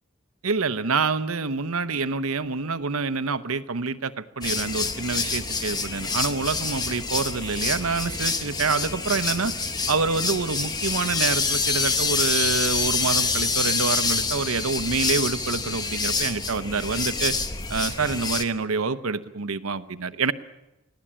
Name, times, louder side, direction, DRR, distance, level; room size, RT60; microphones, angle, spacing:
voice 1, 0.4-9.5 9.9-17.4 17.7-20.3, right 4 dB, 85° right, 13 dB, 1.0 m, -27 dB
sound 1, 4.4-18.4, left 4 dB, 20° left, 1.0 m, -27 dB
25.0 x 17.0 x 8.8 m, 0.95 s
head